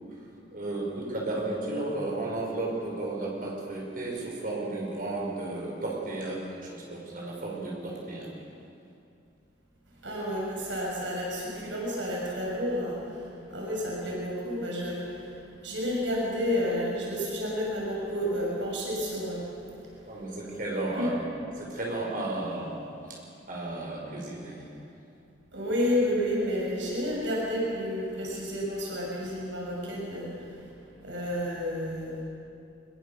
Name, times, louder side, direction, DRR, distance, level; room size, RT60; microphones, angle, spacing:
voice 1, 0.5-8.3 20.1-21.3 21.5-22.8 23.1-24.7, right 2 dB, 45° right, -2 dB, 6.1 m, -33 dB
voice 2, 10.0-13.0 13.5-15.2 15.6-19.5 20.9-21.1 25.5-30.3 31.0-32.2, equal, 80° right, -4 dB, 6.3 m, -30 dB
23.5 x 22.0 x 7.1 m, 2.5 s
head